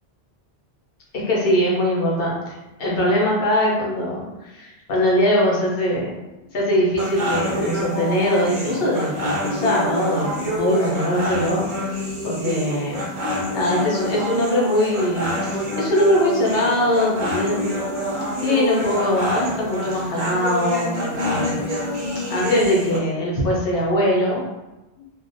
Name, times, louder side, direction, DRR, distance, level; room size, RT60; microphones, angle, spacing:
voice 1, 1.3-6.1 6.5-13.0 13.5-17.8 18.4-21.6 22.3-24.4, equal, 65° left, -3 dB, 0.9 m, -21 dB
sound 1, 7.0-23.0, left 1 dB, 55° right, 0.7 m, -27 dB
2.4 x 2.1 x 2.5 m, 1.0 s
omnidirectional pair, 1.1 m